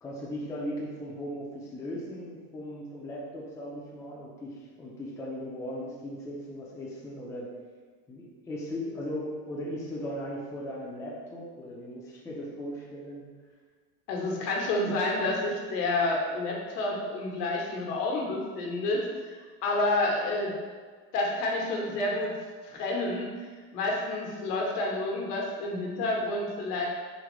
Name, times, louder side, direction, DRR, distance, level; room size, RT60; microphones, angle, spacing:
voice 1, 0.0-7.5 8.1-13.2, equal, 5° left, -5 dB, 0.3 m, -38 dB
voice 2, 14.1-19.0 19.3-20.5 21.1-22.3 22.6-23.3 23.7-26.9, left 2 dB, 80° left, -1 dB, 1.0 m, -29 dB
3.8 x 2.5 x 3.0 m, 1.5 s
supercardioid pair, 120°, 47 cm